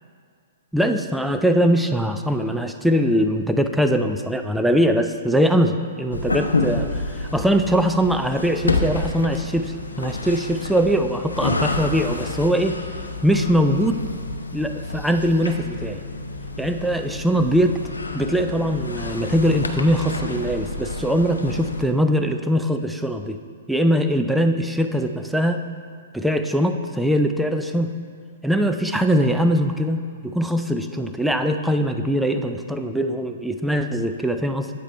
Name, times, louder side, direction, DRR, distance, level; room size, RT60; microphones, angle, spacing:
voice 1, 0.7-12.8 13.2-14.0 14.5-16.0 16.6-17.8 18.1-23.4 23.7-25.6 26.1-27.9 28.4-34.7, equal, 5° right, 6 dB, 0.4 m, -21 dB
sound 1, 6.1-21.9, left 3 dB, 85° left, 0.5 m, -29 dB
8.3 x 4.8 x 4.4 m, 2.1 s
figure-of-eight pair, 115°, 0 cm